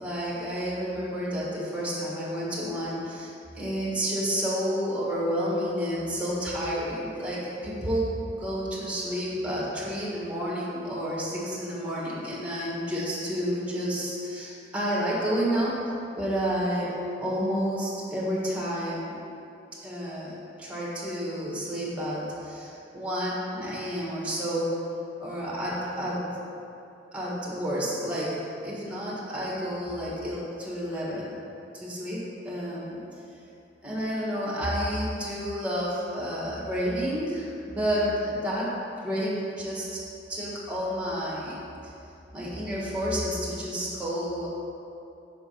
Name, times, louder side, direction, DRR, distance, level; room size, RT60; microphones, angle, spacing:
voice 1, 0.0-8.1 8.4-16.9 17.2-19.1 19.8-24.7 25.2-26.2 27.1-31.5 31.7-33.0 33.8-38.7 39.0-40.0 40.3-41.9 42.3-44.5, equal, 5° right, -6 dB, 1.5 m, -30 dB
5.8 x 4.7 x 5.5 m, 2.7 s
head